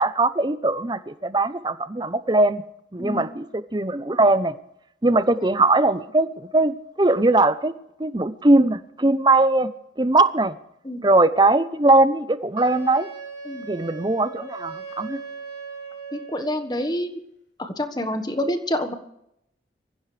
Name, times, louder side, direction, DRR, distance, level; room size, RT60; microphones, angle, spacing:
voice 1, 0.0-2.6 2.9-4.5 5.0-7.7 8.0-9.7 10.0-10.6 11.0-13.1 13.7-15.2, right 2 dB, 25° right, 0.7 m, -20 dB
Wind instrument woodwind instrument, 12.5-16.7, right 4 dB, 65° left, 3.8 m, -38 dB
voice 2, 16.1-17.2 17.6-18.9, left 1 dB, 25° left, 1.4 m, -27 dB
23.5 x 15.5 x 3.4 m
head